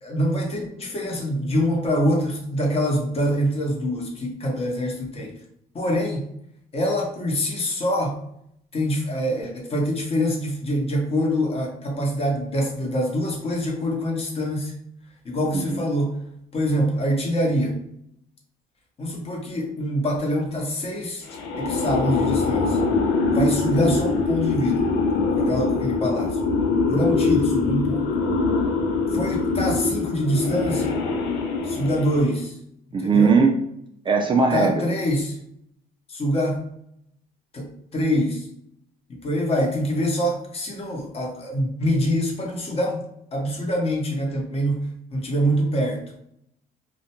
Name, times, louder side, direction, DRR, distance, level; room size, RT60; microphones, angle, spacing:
voice 1, 0.0-5.3 5.7-6.3 6.7-8.2 8.7-14.7 15.2-16.2 16.5-17.8 19.0-21.3 21.6-22.8 23.3-24.9 25.4-26.4 26.9-28.1 29.1-31.0 31.6-32.5 33.0-33.3 34.5-35.4 36.1-36.7 37.5-38.5 39.1-43.0 43.3-44.9 45.1-46.1, equal, 35° left, 0 dB, 0.8 m, -25 dB
sound 1, 21.3-32.4, left 4 dB, 90° left, 0.5 m, -23 dB
voice 2, 32.9-33.5 34.1-34.8, right 5 dB, 30° right, 2 dB, 0.4 m, -19 dB
2.4 x 2.1 x 2.8 m, 0.73 s
cardioid pair, 110°, 17 cm